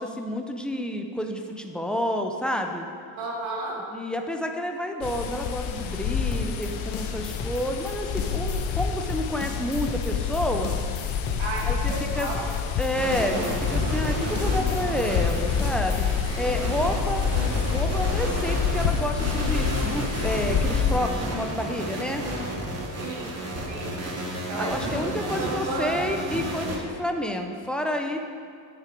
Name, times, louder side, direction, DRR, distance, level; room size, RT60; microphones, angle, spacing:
voice 1, 0.0-2.8 3.9-10.7 11.6-12.3 12.8-16.1 16.3-17.3 17.7-22.2 24.6-28.2, left 1 dB, ahead, 3 dB, 0.4 m, -29 dB
voice 2, 3.2-3.8 11.4-12.5 23.0-23.3 23.7-24.0 24.5-25.1 25.4-25.9, right 2 dB, 90° right, -4 dB, 2.2 m, -32 dB
sound 1, 5.0-21.0, left 7 dB, 90° left, 0.8 m, -28 dB
sound 2, 6.3-16.2, left 3 dB, 30° left, 0.9 m, -37 dB
sound 3, 12.9-26.8, right 1 dB, 30° right, 1.3 m, -32 dB
9.7 x 6.8 x 5.1 m, 2.2 s
cardioid pair, 170°, 47 cm